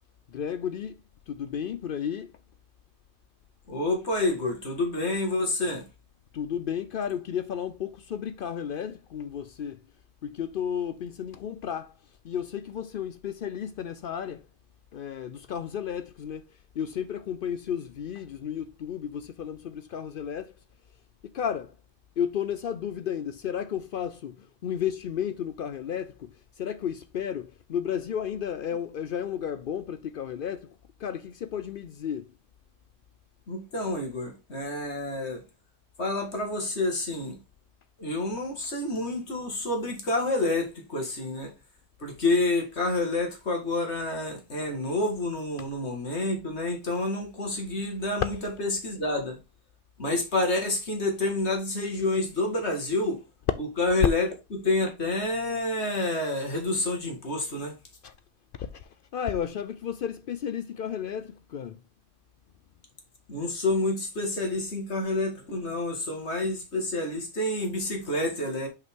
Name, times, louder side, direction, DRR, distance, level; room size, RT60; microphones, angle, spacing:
voice 1, 0.3-1.0 1.3-2.3 6.3-9.8 10.2-12.0 12.2-14.4 14.9-16.5 16.8-20.5 21.3-21.7 22.2-26.3 26.6-32.3 45.6-45.7 58.0-58.1 58.6-61.8, left 8 dB, 70° left, 0.5 m, -33 dB
voice 2, 3.7-5.9 33.5-35.4 36.0-37.4 38.0-41.5 42.0-49.4 50.0-53.2 53.8-57.7 63.3-68.7, left 2 dB, 50° left, 2.1 m, -28 dB
6.0 x 5.3 x 3.6 m
omnidirectional pair, 1.4 m